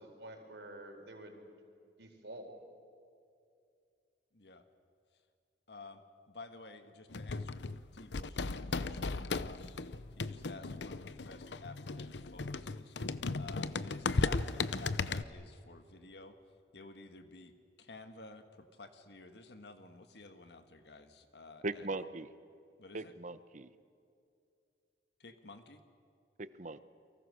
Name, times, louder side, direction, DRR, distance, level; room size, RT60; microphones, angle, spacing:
voice 1, 0.0-1.5 2.0-2.5, right 1 dB, 85° right, 3 dB, 4.4 m, -49 dB
voice 2, 4.3-4.6 5.7-6.0 6.3-9.7 10.2-12.9 13.4-16.3 16.7-17.5 17.8-21.9 22.8-23.1 25.2-25.8, left 3 dB, 70° left, 8 dB, 1.7 m, -52 dB
sound 1, 7.1-15.2, left 3 dB, 85° left, 0.8 m, -36 dB
voice 3, 21.6-22.3 22.9-23.7 26.4-26.8, right 2 dB, 45° right, 13 dB, 0.9 m, -39 dB
30.0 x 24.0 x 6.5 m, 2.4 s
head